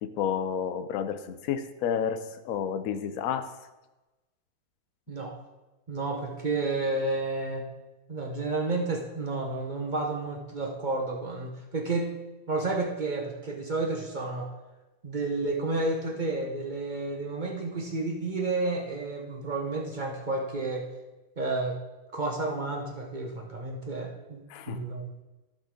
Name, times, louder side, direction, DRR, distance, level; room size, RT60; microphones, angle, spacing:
voice 1, 0.0-3.5 24.5-24.8, left 8 dB, 85° left, 9 dB, 0.7 m, -30 dB
voice 2, 5.9-7.7 8.1-12.2 12.5-14.5 15.0-20.9 21.4-21.8 22.1-25.2, right 3 dB, 45° right, 1 dB, 0.5 m, -31 dB
15.0 x 5.3 x 3.8 m, 1.1 s
omnidirectional pair, 2.3 m